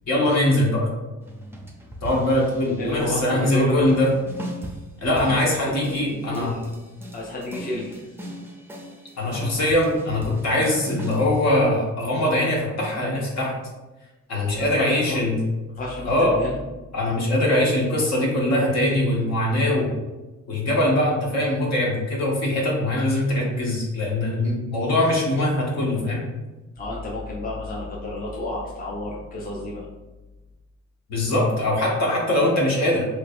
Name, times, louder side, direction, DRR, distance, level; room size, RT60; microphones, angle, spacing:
voice 1, 0.1-0.8 2.0-4.1 5.0-6.5 9.2-13.5 14.3-15.4 16.1-16.3 16.9-19.9 20.5-26.2 31.1-33.1, left 1 dB, 60° left, -3 dB, 1.2 m, -22 dB
sound 1, 1.2-3.2 3.9-11.6, equal, 10° right, 0.5 m, -38 dB
voice 2, 2.8-4.0 4.7-4.8 5.2-6.6 7.1-8.3 9.3-9.4 14.4-15.2 15.8-16.6 26.8-29.9, left 1 dB, 30° left, -4 dB, 0.7 m, -31 dB
3.2 x 3.1 x 2.5 m, 1.1 s
cardioid pair, 90°, 30 cm